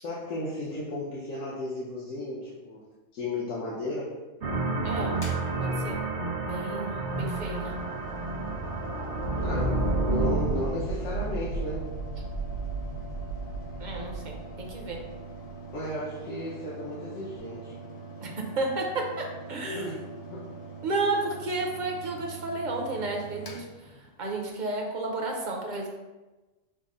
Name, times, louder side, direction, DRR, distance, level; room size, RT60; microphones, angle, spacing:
voice 1, 0.0-2.8 3.1-4.1 9.4-11.9 15.7-17.7 19.7-19.9 20.3-20.5, left 1 dB, 70° left, -7 dB, 1.2 m, -34 dB
sound 1, 4.4-10.7, right 2 dB, 65° right, 1.1 m, -30 dB
voice 2, 4.8-5.2 5.6-6.0 6.5-7.8 13.8-15.0 18.2-20.0 20.8-25.9, right 2 dB, 45° right, 0 dB, 0.7 m, -32 dB
Mechanical fan, 5.1-24.5, right 4 dB, 35° left, 0.4 m, -44 dB
sound 2, 9.1-15.8, right 3 dB, 85° right, 1.5 m, -35 dB
6.2 x 2.1 x 3.7 m, 1.2 s
omnidirectional pair, 1.4 m